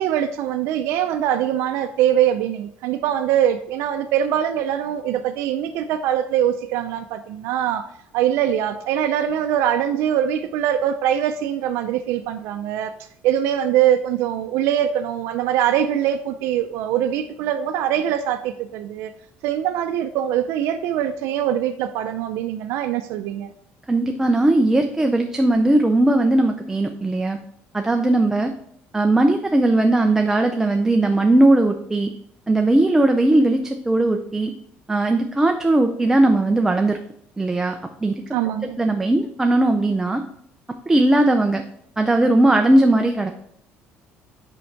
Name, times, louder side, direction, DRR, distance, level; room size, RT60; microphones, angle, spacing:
voice 1, 0.0-7.9 8.1-12.9 13.2-19.1 19.4-23.5 38.3-38.8, right 10 dB, 80° right, 0.4 m, -22 dB
voice 2, 23.9-27.4 27.7-28.5 28.9-32.1 32.5-34.5 34.9-37.0 37.4-38.2 38.8-40.2 40.9-41.6 42.0-43.3, right 2 dB, 10° right, 0.5 m, -18 dB
6.0 x 5.3 x 4.5 m
cardioid pair, 135°, 4 cm